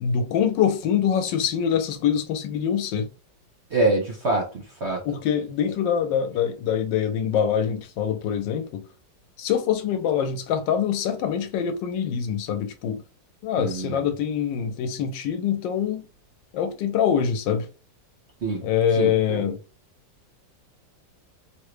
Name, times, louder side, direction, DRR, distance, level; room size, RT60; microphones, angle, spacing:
voice 1, 0.0-3.1 5.0-8.8 9.4-13.0 13.4-16.0 16.5-17.7 18.6-19.6, left 8 dB, 80° left, 1.3 m, -24 dB
voice 2, 3.7-5.0 13.6-14.1 18.4-18.7 19.0-19.6, right 2 dB, 55° right, 0.8 m, -25 dB
3.5 x 2.1 x 3.2 m
omnidirectional pair, 2.0 m